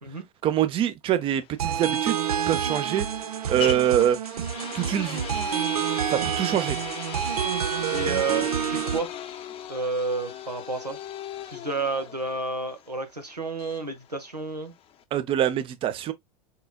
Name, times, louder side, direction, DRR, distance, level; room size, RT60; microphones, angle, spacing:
voice 1, 0.4-2.2 2.5-3.1 3.5-4.2 4.7-5.2 6.1-6.8 15.1-16.1, right 11 dB, 25° right, 0.6 m, -24 dB
sound 1, 1.2-15.0, left 9 dB, 30° left, 0.6 m, -39 dB
sound 2, 1.6-9.0, right 9 dB, 70° right, 0.5 m, -28 dB
voice 2, 7.9-9.1 9.7-11.0 11.5-14.7, right 3 dB, 90° right, 1.1 m, -30 dB
4.2 x 3.9 x 2.2 m
figure-of-eight pair, 90°, 20 cm